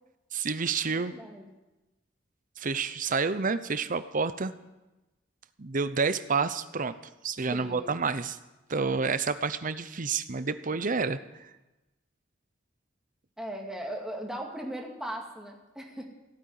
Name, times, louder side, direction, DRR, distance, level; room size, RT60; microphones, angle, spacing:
voice 1, 0.3-1.2 2.6-4.5 5.6-6.9 7.2-8.4 8.7-11.5, right 4 dB, 45° right, 13 dB, 0.8 m, -29 dB
voice 2, 0.8-1.5 7.5-8.0 13.4-16.1, right 1 dB, 5° right, 0 dB, 2.3 m, -38 dB
16.0 x 8.8 x 9.6 m, 1.0 s
head